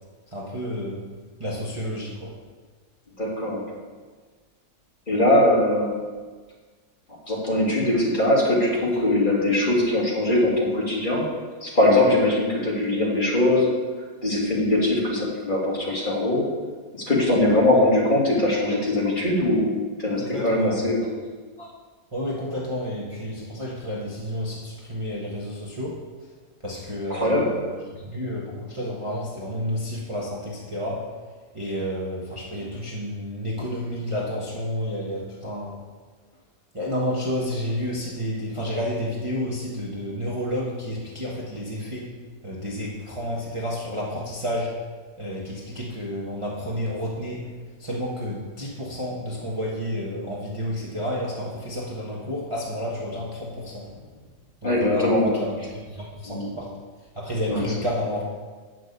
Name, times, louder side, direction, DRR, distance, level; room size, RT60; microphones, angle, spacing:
voice 1, 0.3-1.1 1.4-2.4 17.4-17.5 20.2-20.8 21.6-21.7 22.1-26.0 26.6-31.1 31.5-35.8 36.7-42.2 42.4-44.8 45.2-47.5 47.8-54.0 54.6-56.7 57.1-58.2, equal, 20° right, -5 dB, 1.3 m, -30 dB
voice 2, 3.2-3.6 5.1-5.9 7.3-11.2 11.6-13.7 14.2-16.4 17.1-19.7 20.0-21.0 27.1-27.5 54.6-55.3 56.3-56.4 57.5-57.6, left 1 dB, 30° left, -5 dB, 2.6 m, -21 dB
9.1 x 6.3 x 6.6 m, 1.4 s
omnidirectional pair, 1.7 m